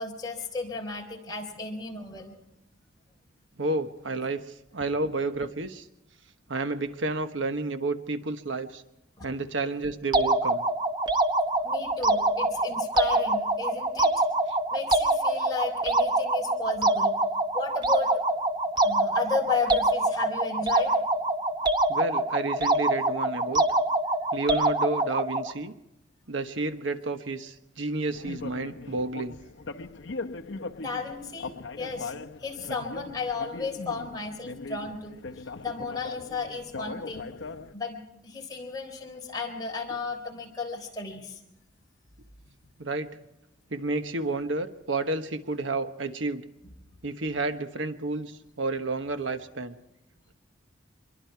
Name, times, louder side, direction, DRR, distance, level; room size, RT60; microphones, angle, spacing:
voice 1, 0.0-2.3 9.2-9.3 11.6-14.1 14.7-17.2 17.5-18.2 18.8-20.9 30.8-32.1 32.4-35.2 35.6-37.3 37.7-41.4, left 4 dB, 20° left, -1 dB, 3.9 m, -34 dB
voice 2, 3.6-4.4 4.7-5.8 6.5-8.8 9.2-10.6 21.9-23.6 24.3-25.7 26.3-29.3 42.8-43.1 43.7-46.4 47.0-49.7, right 3 dB, 75° right, 9 dB, 1.2 m, -30 dB
sound 1, 10.1-25.5, right 2 dB, 20° right, 0.9 m, -25 dB
sound 2, 28.1-37.7, left 3 dB, 70° left, 0.8 m, -40 dB
25.0 x 22.5 x 4.7 m, 0.84 s
head